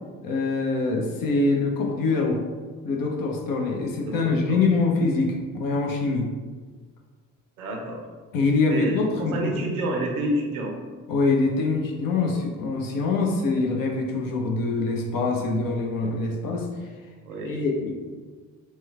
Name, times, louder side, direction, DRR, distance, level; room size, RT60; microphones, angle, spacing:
voice 1, 0.2-2.4 2.8-6.3 8.3-9.6 11.1-16.9 17.4-17.9, left 3 dB, 55° left, 0 dB, 0.7 m, -24 dB
voice 2, 4.0-4.6 7.6-8.0 8.7-9.0 9.3-10.8 17.3-17.5, right 1 dB, 85° right, 1 dB, 0.5 m, -29 dB
3.0 x 2.2 x 3.4 m, 1.5 s
figure-of-eight pair, 40°, 41 cm